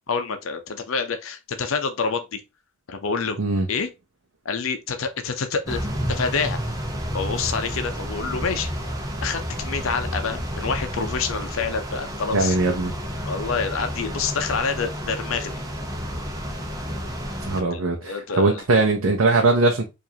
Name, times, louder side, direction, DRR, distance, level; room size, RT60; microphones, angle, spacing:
voice 1, 0.1-2.4 2.9-3.4 3.7-3.9 4.4-6.6 7.1-8.7 9.2-12.6 13.2-15.6 17.6-18.6, left 5 dB, 75° left, 0.6 m, -27 dB
sound 1, 5.7-17.6, equal, 15° right, 0.8 m, -31 dB
voice 2, 12.3-12.9 17.4-19.9, right 3 dB, 85° right, 0.7 m, -20 dB
4.8 x 2.6 x 2.8 m
head